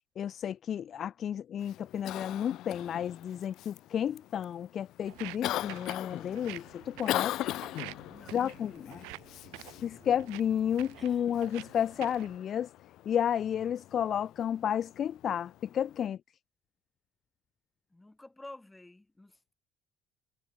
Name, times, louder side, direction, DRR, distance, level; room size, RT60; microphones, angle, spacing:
voice 1, 0.2-7.4 8.3-9.0 9.8-12.7 13.1-16.2, left 9 dB, 55° left, 0.5 m, -32 dB
Cough, 1.6-16.1, left 15 dB, 70° left, 2.0 m, -41 dB
Walk footsteps, 5.0-12.4, right 34 dB, 85° right, 3.9 m, -49 dB
voice 2, 8.1-9.2 11.0-11.3 17.9-19.5, left 2 dB, 10° left, 3.5 m, -52 dB
supercardioid pair, 80°, 0 cm